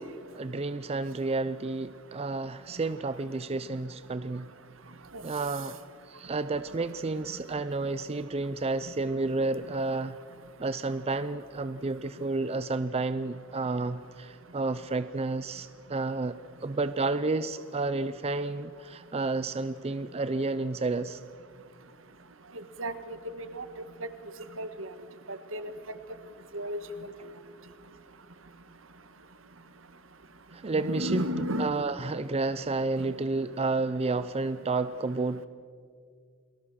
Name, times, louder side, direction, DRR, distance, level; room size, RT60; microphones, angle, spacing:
voice 1, 0.3-4.5 5.2-5.8 6.1-10.2 10.6-21.2 30.5-31.2 31.6-35.4, right 3 dB, 30° right, 13 dB, 0.5 m, -31 dB
voice 2, 22.8-23.6 24.6-24.9 25.3-25.7 26.5-26.8 30.7-31.7, equal, 70° right, 10 dB, 1.6 m, -33 dB
29.0 x 19.5 x 6.4 m, 2.2 s
head